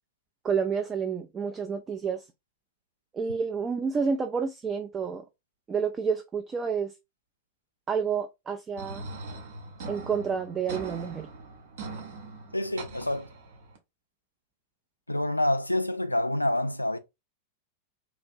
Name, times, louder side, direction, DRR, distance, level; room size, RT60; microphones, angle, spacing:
voice 1, 0.4-2.3 3.1-5.2 5.7-6.9 7.9-9.0 9.9-11.3, right 6 dB, 20° right, 0.4 m, -29 dB
sound 1, 8.8-13.8, right 3 dB, 60° right, 0.8 m, -41 dB
voice 2, 12.5-13.3 15.1-17.0, left 1 dB, 85° left, 0.3 m, -27 dB
3.0 x 2.4 x 2.6 m
figure-of-eight pair, 90°, 0 cm